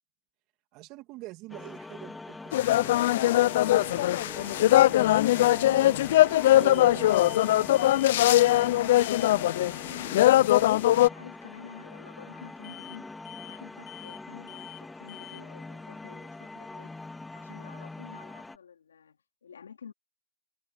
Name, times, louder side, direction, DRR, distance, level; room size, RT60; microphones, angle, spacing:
voice 1, 0.7-2.6 3.0-6.0 6.5-9.9, right 20 dB, 40° right, 2.3 m, -47 dB
sound 1, 1.5-18.6, left 2 dB, 5° left, 2.3 m, -43 dB
sound 2, 2.5-11.1, left 14 dB, 60° left, 0.4 m, -21 dB
sound 3, 6.7-6.9 7.1-7.5 7.7-8.1 8.4-8.7 9.0-9.3 12.6-13.0 13.3-13.6 13.9-14.2 14.5-14.8 15.1-15.4, left 26 dB, 45° left, 2.3 m, -47 dB
voice 2, 11.0-16.9 17.4-19.9, left 7 dB, 90° left, 3.6 m, -50 dB
hypercardioid pair, 130°, 0 cm